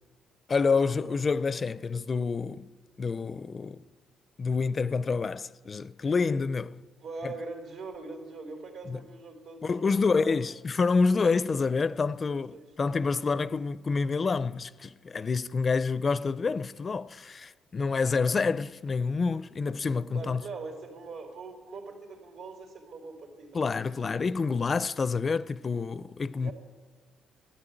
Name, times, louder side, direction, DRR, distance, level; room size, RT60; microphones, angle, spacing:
voice 1, 0.5-2.7 3.0-3.8 4.4-6.8 7.2-7.3 8.9-9.0 9.6-20.4 23.5-26.5, left 4 dB, 35° left, 0.4 m, -28 dB
voice 2, 7.0-10.4 12.3-12.6 18.2-18.3 20.1-23.6 23.9-24.0 26.4-26.5, right 3 dB, 85° right, 3.6 m, -42 dB
13.0 x 10.5 x 9.0 m
cardioid pair, 90°, 0 cm